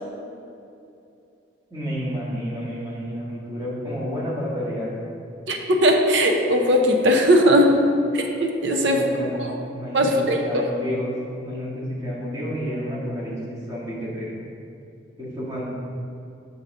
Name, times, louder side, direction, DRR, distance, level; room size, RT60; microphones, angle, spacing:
voice 1, 1.7-4.9 8.8-14.4 15.2-15.7, equal, 15° right, -7 dB, 1.6 m, -30 dB
voice 2, 5.5-7.8 8.1-9.1 9.4-9.6 9.9-10.7, equal, 65° right, 2 dB, 0.7 m, -19 dB
6.7 x 4.0 x 6.3 m, 2.6 s
head